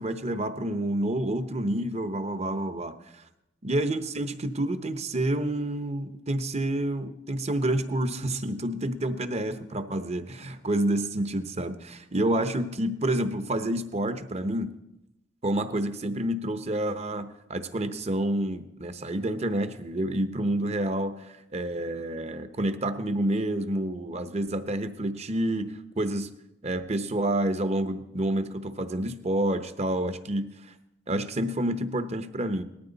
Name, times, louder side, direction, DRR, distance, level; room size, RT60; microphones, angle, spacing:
voice 1, 0.0-2.9 3.6-14.7 15.4-26.3 26.6-30.7 31.1-32.6, right 1 dB, 35° right, 10 dB, 0.9 m, -29 dB
19.0 x 13.5 x 4.1 m, 0.88 s
head